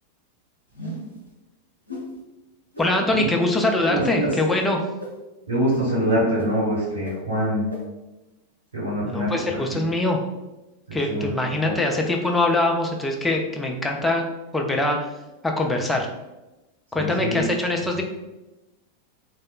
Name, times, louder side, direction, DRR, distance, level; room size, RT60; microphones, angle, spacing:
sound 1, 0.7-1.2 1.9-2.1 2.7-2.9 3.5-3.7 4.3-4.4 5.0-5.1 5.7-5.8 6.4-6.5 7.0-7.1 7.7-7.8, right 1 dB, 90° left, 0.6 m, -34 dB
voice 1, 2.8-4.8 9.0-10.2 10.9-14.2 14.5-15.0 15.4-16.1 16.9-18.0, left 2 dB, 10° left, 1 dB, 0.4 m, -23 dB
voice 2, 3.9-4.3 5.5-7.7 8.7-9.9 10.9-11.3 11.6-11.7 16.9-17.4 18.0-18.1, equal, 80° right, -7 dB, 1.1 m, -25 dB
3.0 x 2.1 x 2.3 m, 1.0 s
figure-of-eight pair, 90°, 0 cm